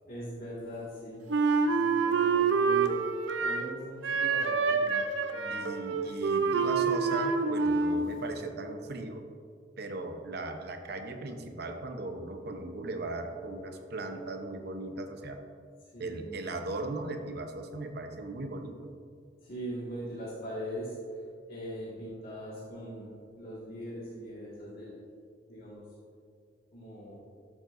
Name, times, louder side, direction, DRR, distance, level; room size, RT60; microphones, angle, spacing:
voice 1, 0.1-1.2 1.8-3.0 3.4-5.0 5.3-5.7 15.9-16.6 19.4-21.0 21.5-25.0 25.5-25.9 26.7-27.2, equal, 55° left, -9 dB, 1.9 m, -41 dB
Wind instrument woodwind instrument, 1.3-3.7 4.0-8.1, right 4 dB, 90° right, 0.6 m, -27 dB
voice 2, 5.5-9.3 9.8-15.4 16.0-18.9, right 2 dB, 60° right, 5 dB, 0.8 m, -38 dB
12.5 x 7.5 x 2.6 m, 2.2 s
head